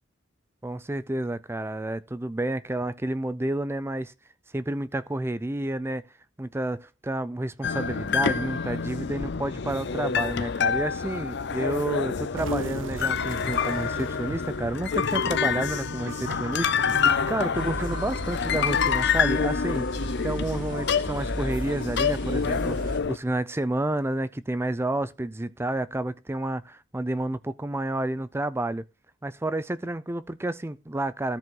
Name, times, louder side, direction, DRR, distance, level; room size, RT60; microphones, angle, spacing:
voice 1, 0.6-4.1 4.5-6.0 6.4-19.9 20.2-28.8 29.2-31.4, right 1 dB, 15° right, 0.4 m, -30 dB
sound 1, 7.6-23.2, left 6 dB, 60° left, 0.6 m, -27 dB
sound 2, 12.4-18.2, right 4 dB, 75° right, 0.7 m, -39 dB
sound 3, 17.5-23.0, right 1 dB, 45° right, 2.1 m, -35 dB
13.5 x 5.0 x 3.7 m
head